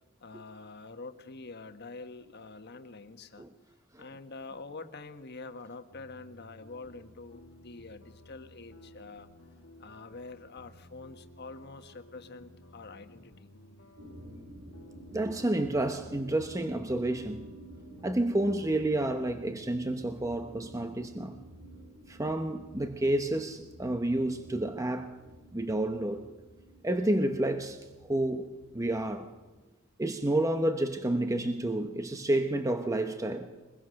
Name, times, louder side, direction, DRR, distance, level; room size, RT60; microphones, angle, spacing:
voice 1, 0.2-3.5 4.0-9.3 9.8-13.5, left 3 dB, 55° left, 1.4 m, -46 dB
sound 1, 5.9-19.3, left 1 dB, 80° left, 1.9 m, -55 dB
sound 2, 14.0-29.6, right 1 dB, 90° right, 2.7 m, -51 dB
voice 2, 15.1-17.5 18.0-21.4 22.1-25.1 25.5-26.3 26.8-28.5 28.7-29.3 30.0-33.5, right 1 dB, 15° right, 0.9 m, -30 dB
23.0 x 21.5 x 6.5 m
head